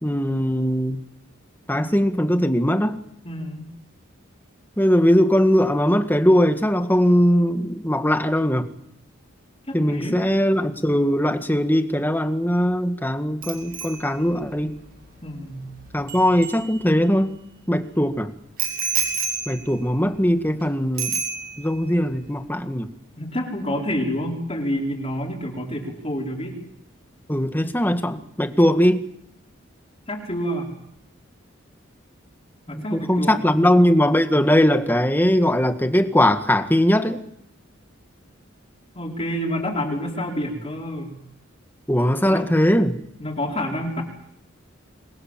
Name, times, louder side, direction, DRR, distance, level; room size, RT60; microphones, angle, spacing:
voice 1, 0.0-1.0 1.7-3.0 4.8-8.7 9.7-14.8 15.9-17.4 17.7-18.3 19.5-21.1 21.6-22.9 27.3-29.1 32.7-37.2 41.9-43.0, equal, 10° left, 8 dB, 1.7 m, -20 dB
voice 2, 3.2-3.7 9.7-10.3 15.2-15.7 23.2-26.6 30.1-30.8 32.7-33.7 38.9-41.2 42.2-42.5 43.2-44.0, equal, 30° left, -2 dB, 4.9 m, -28 dB
Bicycle bell, 13.4-17.2 18.6-20.6 21.0-21.8 22.1-22.4, right 6 dB, 50° right, 6.4 m, -31 dB
27.5 x 22.0 x 7.5 m, 0.71 s
head